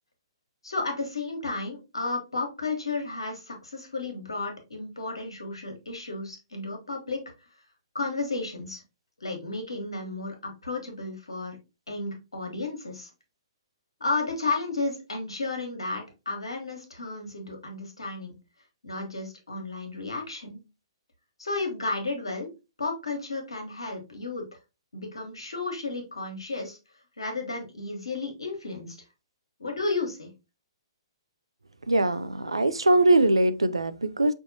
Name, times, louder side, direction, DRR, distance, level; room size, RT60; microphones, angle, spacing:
voice 1, 0.6-7.2 7.9-8.8 9.2-11.6 11.9-13.1 14.0-18.3 18.8-20.6 21.4-22.5 22.8-24.4 24.9-26.8 27.2-29.0 29.6-30.3, left 3 dB, 75° left, 1.3 m, -33 dB
voice 2, 31.9-34.3, right 2 dB, 80° right, 0.4 m, -22 dB
5.5 x 2.7 x 2.7 m
figure-of-eight pair, 120°, 3 cm